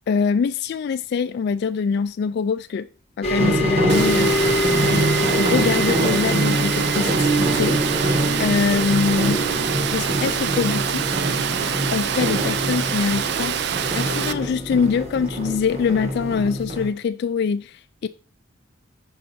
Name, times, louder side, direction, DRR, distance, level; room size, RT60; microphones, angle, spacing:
voice 1, 0.1-2.9 3.2-4.4 4.8-7.8 8.1-9.4 9.9-11.1 11.9-18.1, left 5 dB, 55° left, 0.3 m, -24 dB
sound 1, 3.2-16.6, left 2 dB, 35° left, 0.9 m, -29 dB
sound 2, 3.4-16.9, right 1 dB, 35° right, 1.2 m, -25 dB
Water, 3.9-14.3, right 9 dB, 60° right, 0.4 m, -26 dB
6.4 x 4.7 x 4.2 m
head